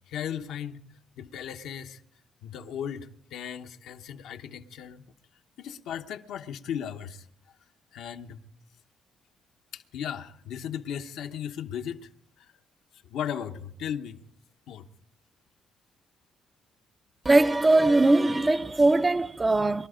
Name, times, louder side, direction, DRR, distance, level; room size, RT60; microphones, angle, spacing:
voice 1, 0.1-0.8 1.2-2.0 2.4-5.1 5.6-7.3 7.9-8.4 9.7-12.1 12.4-12.5 13.1-14.2 14.7-14.9, left 9 dB, 80° left, 1.0 m, -36 dB
voice 2, 17.2-19.9, right 2 dB, 25° right, 0.6 m, -21 dB
22.0 x 12.5 x 5.0 m
supercardioid pair, 70°, 0 cm